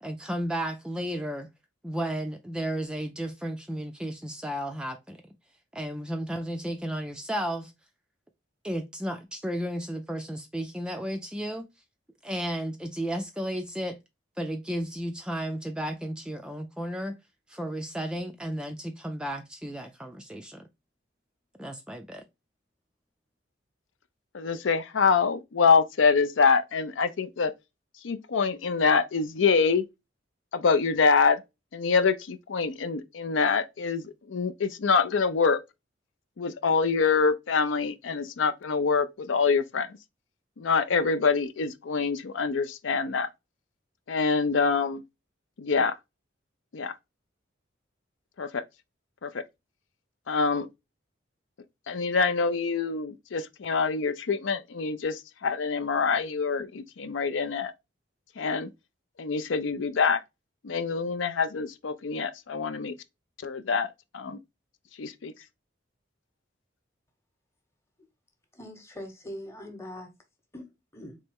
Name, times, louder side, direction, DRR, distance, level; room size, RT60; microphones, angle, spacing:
voice 1, 0.0-1.5 1.8-5.3 5.7-7.7 8.6-11.7 12.2-14.0 14.4-17.2 17.5-20.7 21.6-22.2, equal, 5° right, 0.3 m, -33 dB
voice 2, 24.3-27.5 28.0-29.8 30.5-31.4 31.7-35.6 36.4-40.0 40.6-43.3 44.1-45.0 45.6-46.0 46.7-46.9 48.4-48.6 49.2-49.4 50.3-50.7 51.9-57.7 58.4-58.7 59.2-60.2 60.6-62.9 63.4-64.4 65.0-65.3, left 5 dB, 80° left, 0.5 m, -25 dB
voice 3, 68.5-70.1 70.5-71.2, left 1 dB, 15° left, 1.0 m, -42 dB
4.1 x 3.3 x 3.5 m
head